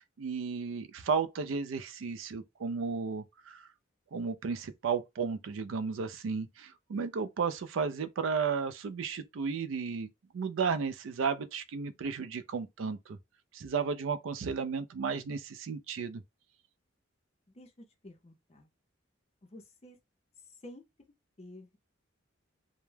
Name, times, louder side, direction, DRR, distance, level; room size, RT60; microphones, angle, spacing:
voice 1, 0.0-3.7 4.1-13.2 13.5-16.2, right 5 dB, 75° right, 0.4 m, -34 dB
voice 2, 17.5-18.7 19.4-20.0 20.5-20.8 21.4-21.8, left 1 dB, 30° left, 0.5 m, -51 dB
2.2 x 2.0 x 3.1 m
head